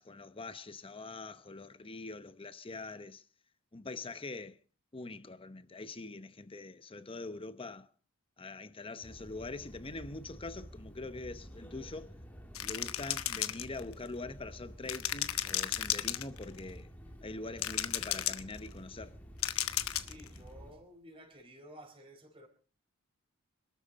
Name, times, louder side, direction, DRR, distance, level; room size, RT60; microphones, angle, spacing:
voice 1, 0.0-3.2 3.7-4.6 4.9-7.9 8.4-12.1 12.6-16.9 17.2-19.2, left 3 dB, 25° left, 0.9 m, -44 dB
sound 1, 9.0-20.7, equal, 5° left, 2.3 m, -51 dB
sound 2, 12.5-14.1 14.9-16.6 17.6-18.6 19.4-20.3, left 12 dB, 80° left, 1.1 m, -33 dB
voice 2, 19.9-22.5, equal, 25° right, 4.3 m, -53 dB
26.0 x 13.0 x 4.2 m
head